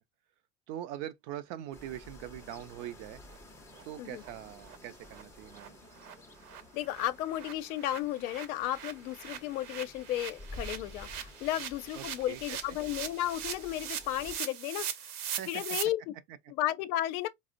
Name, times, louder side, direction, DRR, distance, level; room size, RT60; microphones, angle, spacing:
voice 1, 0.7-3.2 3.8-5.8 11.9-12.8 15.4-15.6, right 12 dB, 45° right, 0.5 m, -42 dB
sound 1, 1.7-14.4, left 1 dB, 5° left, 0.5 m, -51 dB
sound 2, 2.9-3.0 3.3-3.4 3.7-3.8 4.2-4.3 4.6-4.8 5.1-5.2 5.5-5.7 5.9-15.8, right 9 dB, 80° right, 0.8 m, -41 dB
voice 2, 6.7-14.9 15.5-16.1 16.6-17.3, left 13 dB, 75° left, 0.6 m, -34 dB
4.2 x 2.0 x 2.4 m
supercardioid pair, 125°, 43 cm